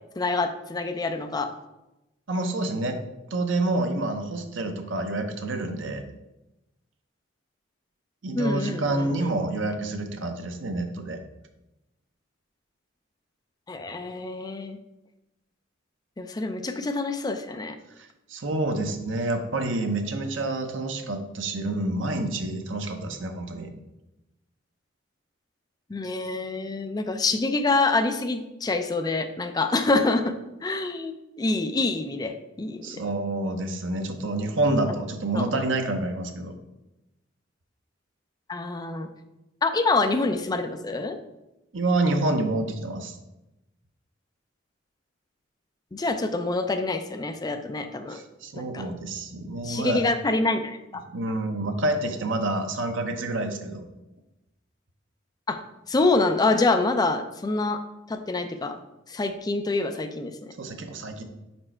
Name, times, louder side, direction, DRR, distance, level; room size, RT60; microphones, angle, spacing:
voice 1, 0.2-1.5 8.3-9.3 13.7-14.8 16.2-17.8 25.9-30.3 30.6-33.0 35.4-35.5 38.5-39.1 39.6-41.2 45.9-48.2 48.6-48.9 49.6-51.0 55.5-55.6 55.9-57.8 58.1-58.8 59.1-60.5, left 3 dB, 20° left, 8 dB, 0.4 m, -26 dB
voice 2, 2.3-3.0 3.3-6.0 8.2-11.2 18.0-23.7 32.8-36.5 41.7-43.2 48.1-50.0 51.1-53.9 60.6-61.2, right 2 dB, 80° right, 5 dB, 0.7 m, -28 dB
5.1 x 4.4 x 4.4 m, 0.96 s
head